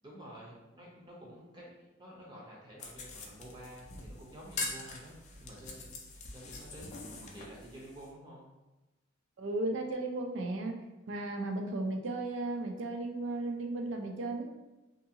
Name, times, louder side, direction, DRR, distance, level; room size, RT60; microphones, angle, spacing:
voice 1, 0.0-8.5, right 1 dB, 20° right, -4 dB, 0.6 m, -50 dB
sound 1, 2.8-8.1, left 3 dB, 35° left, 0.3 m, -43 dB
voice 2, 9.4-10.8 11.1-14.5, right 2 dB, 65° right, 3 dB, 0.4 m, -35 dB
2.7 x 2.5 x 2.7 m, 1.1 s
head